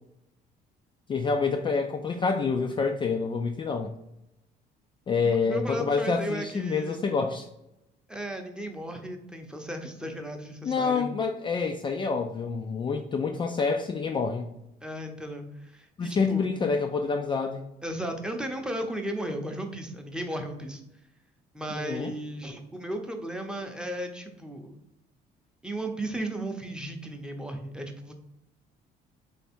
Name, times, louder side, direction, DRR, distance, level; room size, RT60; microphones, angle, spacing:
voice 1, 1.1-3.9 5.1-7.5 10.6-14.5 16.0-17.7 21.7-22.2, left 4 dB, 30° left, 4 dB, 0.3 m, -27 dB
voice 2, 5.2-7.0 8.1-11.1 14.8-16.5 17.8-20.8 21.5-24.8 25.6-28.1, right 1 dB, 5° right, 4 dB, 0.7 m, -35 dB
3.4 x 3.3 x 4.3 m, 0.85 s
cardioid pair, 110°, 17 cm